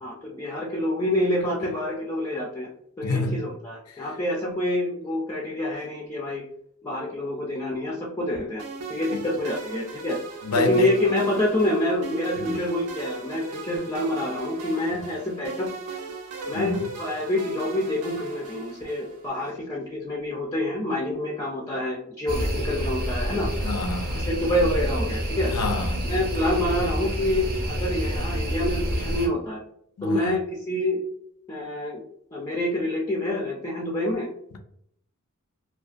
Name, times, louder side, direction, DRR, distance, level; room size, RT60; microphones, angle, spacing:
voice 1, 0.0-2.7 3.0-6.4 6.8-8.6 8.9-10.2 10.5-15.7 16.5-23.5 24.1-25.5 26.0-29.6 30.0-30.4 30.7-31.0 31.5-32.0 32.3-34.3, left 1 dB, 15° left, 0.3 m, -27 dB
voice 2, 3.0-3.4 3.9-4.0 9.1-9.2 10.4-10.9 12.4-12.6 14.9-15.1 16.5-16.8 23.6-24.3 25.5-26.0 30.0-30.4, left 2 dB, 80° left, 0.4 m, -28 dB
sound 1, 8.6-19.3, right 3 dB, 85° right, 0.5 m, -38 dB
sound 2, 22.3-29.3, equal, 40° right, 0.6 m, -28 dB
2.3 x 2.2 x 2.4 m
head